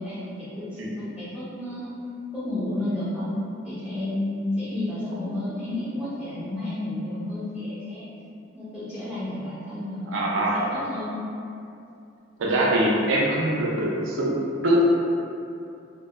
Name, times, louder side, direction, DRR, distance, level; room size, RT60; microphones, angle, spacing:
voice 1, 0.0-1.9 2.3-3.4 3.6-8.1 8.5-11.2, left 1 dB, 5° right, -14 dB, 0.4 m, -31 dB
voice 2, 10.1-10.7 12.4-14.8, right 1 dB, 85° right, -4 dB, 0.5 m, -23 dB
2.7 x 2.0 x 2.3 m, 2.6 s
head